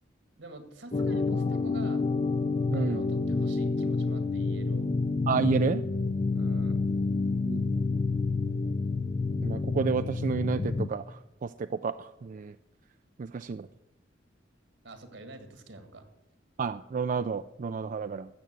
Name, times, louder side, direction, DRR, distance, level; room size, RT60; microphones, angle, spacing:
voice 1, 0.4-2.0 2.7-4.9 6.3-6.9 14.8-16.1, right 2 dB, 75° right, 8 dB, 1.9 m, -46 dB
sound 1, 0.9-10.9, left 3 dB, 35° left, 0.5 m, -28 dB
voice 2, 2.7-3.0 5.3-5.8 7.4-7.6 9.4-12.5 13.2-13.7 16.6-18.3, right 5 dB, 45° right, 11 dB, 0.4 m, -30 dB
13.5 x 7.5 x 7.9 m, 0.94 s
head